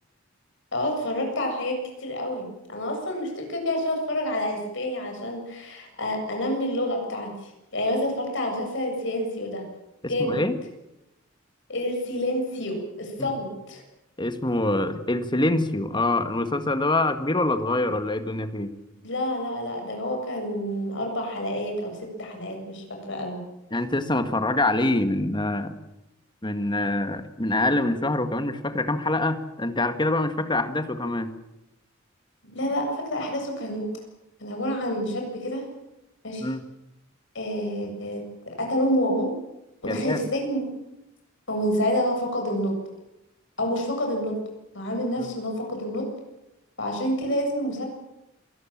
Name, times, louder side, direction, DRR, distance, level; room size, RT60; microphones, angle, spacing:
voice 1, 0.7-1.7 2.0-9.6 10.0-10.4 11.7-13.8 19.0-23.4 32.4-33.9 34.4-35.6 36.2-36.5 37.3-39.3 39.8-40.6 41.5-42.7 43.6-44.4 44.7-46.1 46.8-47.8, equal, 65° left, 2 dB, 7.5 m, -28 dB
voice 2, 10.2-10.6 13.2-13.3 14.2-18.7 23.7-25.7 26.4-31.3 36.4-36.6 39.8-40.2 45.2-45.3, left 2 dB, 25° left, 9 dB, 1.8 m, -25 dB
27.5 x 19.0 x 7.4 m, 0.91 s
head